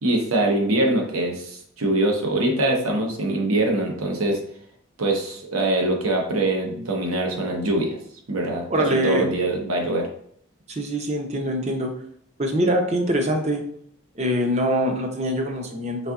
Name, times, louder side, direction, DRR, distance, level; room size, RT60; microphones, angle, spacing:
voice 1, 0.0-4.4 5.0-8.0 8.3-10.1, right 1 dB, 80° right, 1 dB, 0.9 m, -23 dB
voice 2, 8.7-9.3 10.7-11.9 12.4-13.6 14.2-16.1, right 1 dB, 30° right, 2 dB, 0.6 m, -23 dB
4.1 x 3.7 x 2.4 m, 0.65 s
head